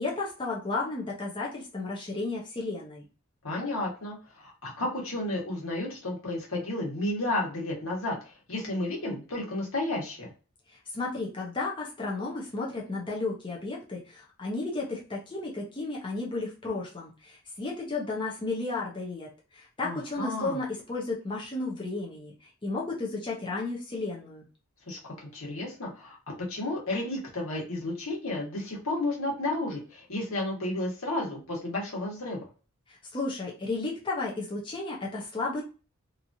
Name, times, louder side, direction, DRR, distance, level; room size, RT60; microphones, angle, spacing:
voice 1, 0.0-3.0 10.7-24.5 32.9-35.6, left 3 dB, 25° left, -3 dB, 0.6 m, -33 dB
voice 2, 3.4-10.3 19.8-20.6 24.9-32.4, left 1 dB, 75° left, -2 dB, 1.3 m, -32 dB
2.9 x 2.5 x 2.6 m, 0.35 s
head